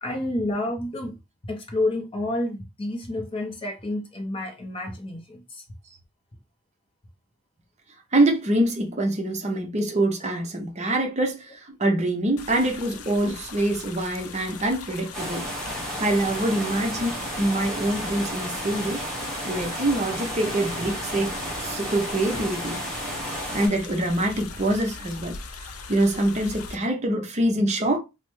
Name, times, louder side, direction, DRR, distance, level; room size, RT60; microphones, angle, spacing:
voice 1, 0.0-1.2 1.4-5.6, left 1 dB, 25° left, 0.5 m, -29 dB
voice 2, 8.1-15.5 16.0-19.1 19.5-22.8 23.5-28.0, right 1 dB, 30° right, 0.5 m, -25 dB
sound 1, 12.4-26.8, left 5 dB, 80° left, 0.5 m, -41 dB
sound 2, 15.1-23.7, equal, 5° left, 1.2 m, -32 dB
3.2 x 2.0 x 3.0 m
head